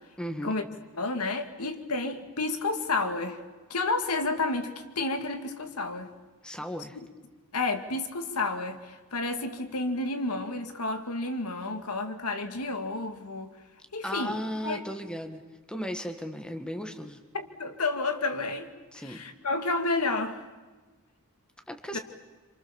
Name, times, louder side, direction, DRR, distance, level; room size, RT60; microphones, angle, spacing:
voice 1, 0.2-0.6 6.4-7.0 14.0-15.4 15.7-17.2 18.9-19.2 21.7-22.0, equal, 5° left, 5 dB, 1.8 m, -35 dB
voice 2, 0.9-3.4 3.7-4.7 5.0-6.1 7.5-13.5 13.9-14.3 14.6-14.8 17.6-18.7 19.0-20.4 21.9-22.0, left 3 dB, 90° left, 7 dB, 2.3 m, -30 dB
27.5 x 27.0 x 7.2 m, 1.3 s
head